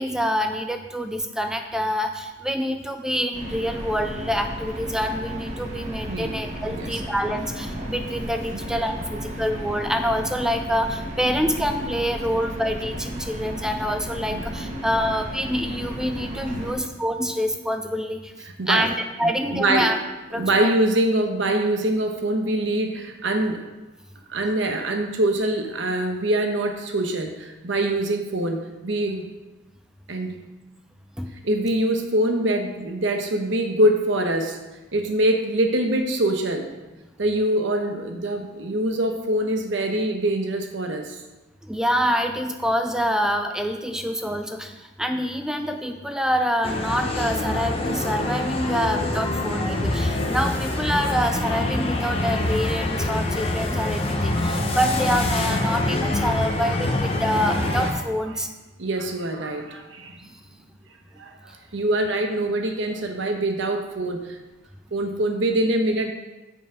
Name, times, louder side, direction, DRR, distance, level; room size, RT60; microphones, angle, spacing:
voice 1, 0.0-18.3 18.7-20.0 20.3-20.7 31.2-31.3 41.6-58.5, equal, 5° right, 5 dB, 0.4 m, -26 dB
sound 1, 3.3-16.7, equal, 35° right, 1.5 m, -34 dB
voice 2, 14.3-14.7 16.5-16.6 18.6-18.9 19.2-19.9 20.4-23.6 24.3-29.3 30.1-30.4 31.4-34.6 34.9-36.7 37.2-41.2 58.8-60.2 61.2-64.4 64.9-66.1, right 1 dB, 65° right, 4 dB, 0.9 m, -24 dB
sound 2, 46.6-57.9, left 2 dB, 30° left, 0.8 m, -25 dB
7.1 x 5.7 x 4.9 m, 1.1 s
head